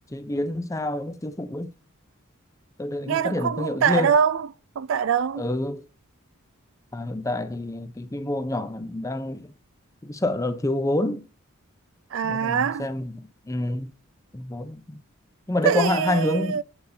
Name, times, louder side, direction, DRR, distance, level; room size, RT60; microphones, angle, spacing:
voice 1, 0.1-1.7 2.8-4.1 5.4-5.9 6.9-9.5 10.0-11.3 12.2-13.9 14.3-15.0 15.5-16.6, left 1 dB, 15° left, 0.5 m, -27 dB
voice 2, 3.1-4.5 4.8-5.5 12.1-12.9 15.6-16.6, right 7 dB, 65° right, 0.3 m, -23 dB
8.7 x 4.1 x 2.7 m
head